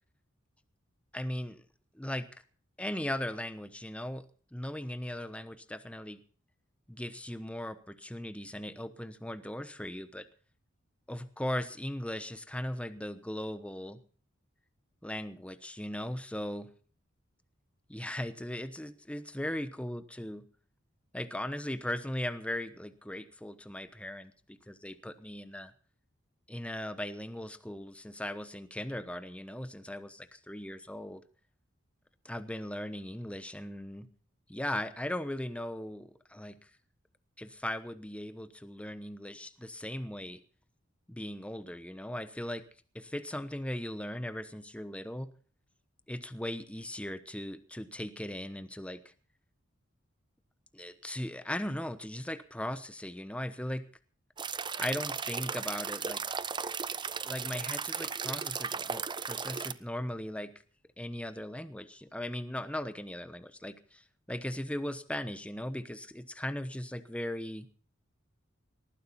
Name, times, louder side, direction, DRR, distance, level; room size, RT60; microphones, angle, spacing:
voice 1, 1.1-1.6 1.9-2.4 2.8-4.2 4.5-6.2 6.9-10.3 11.1-14.0 15.0-16.7 17.9-20.4 21.1-25.7 26.5-31.2 32.2-34.1 34.5-36.6 37.4-40.4 41.1-42.7 42.9-45.3 46.1-49.1 50.7-53.8 54.8-56.2 57.2-60.5 61.0-67.7, left 1 dB, 5° left, 11 dB, 1.0 m, -38 dB
sound 1, 54.4-59.7, right 6 dB, 25° right, 0.7 m, -36 dB
19.0 x 14.5 x 4.2 m, 0.41 s
head